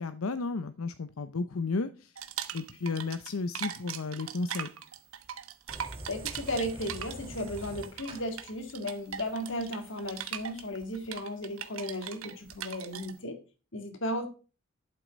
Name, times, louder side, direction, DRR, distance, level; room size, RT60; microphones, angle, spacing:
voice 1, 0.0-2.1 2.5-4.7, left 3 dB, 90° left, 11 dB, 0.7 m, -33 dB
sound 1, 2.2-3.3 3.5-13.1, right 9 dB, 85° right, 1.1 m, -40 dB
sound 2, 5.7-10.7, right 1 dB, 25° right, 2.2 m, -46 dB
voice 2, 6.1-13.4 13.7-14.3, left 1 dB, 65° left, 7 dB, 2.1 m, -35 dB
11.5 x 7.5 x 5.2 m, 0.35 s
head